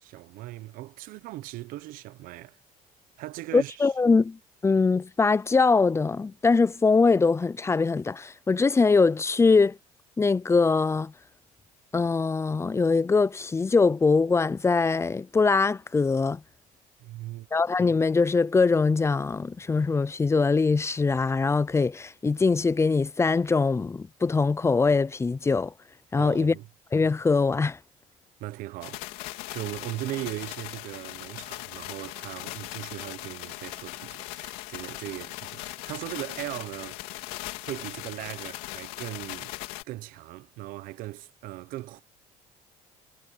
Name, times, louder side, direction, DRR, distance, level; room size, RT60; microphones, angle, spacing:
voice 1, 0.0-2.6 3.2-3.9 17.0-17.5 26.1-26.7 28.4-37.0 37.6-39.5 39.8-42.0, right 17 dB, 75° right, 1.1 m, -38 dB
voice 2, 3.5-4.4 4.6-9.8 10.2-11.1 11.9-16.4 17.5-25.7 26.1-26.5 26.9-27.8, left 4 dB, 20° left, 0.6 m, -22 dB
sound 1, 28.8-39.8, left 20 dB, 85° left, 3.4 m, -39 dB
supercardioid pair, 95°, 14 cm